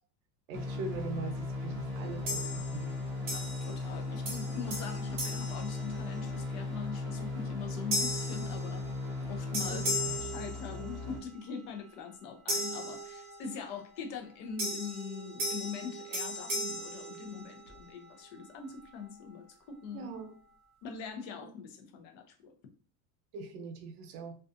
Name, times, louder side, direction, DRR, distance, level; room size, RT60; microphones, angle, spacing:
sound 1, 0.5-11.2, left 2 dB, 10° left, 0.3 m, -37 dB
voice 1, 0.5-2.9 9.7-9.8 19.9-20.3 23.3-24.3, right 4 dB, 80° right, 6 dB, 0.8 m, -41 dB
sound 2, 2.3-2.9 3.3-4.0 4.3-6.4 6.9-7.2 7.9-9.2 9.5-11.2 12.5-13.6 14.6-17.8, equal, 20° right, 0.7 m, -37 dB
voice 2, 3.2-9.9 10.2-20.1 20.8-22.5, left 6 dB, 50° left, 4 dB, 0.6 m, -42 dB
2.5 x 2.3 x 2.5 m, 0.42 s
supercardioid pair, 165°, 45 cm